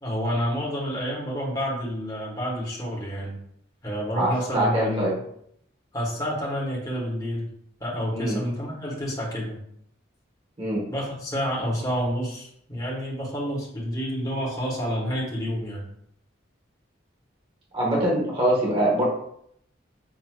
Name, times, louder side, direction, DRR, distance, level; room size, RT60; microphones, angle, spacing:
voice 1, 0.0-3.4 3.8-5.1 5.9-7.5 7.8-9.6 10.9-15.9, equal, 20° left, -5 dB, 1.2 m, -29 dB
voice 2, 4.2-5.2 8.1-8.4 10.6-10.9 17.7-19.1, right 1 dB, 30° right, -4 dB, 1.0 m, -23 dB
6.0 x 2.7 x 2.3 m, 0.70 s
head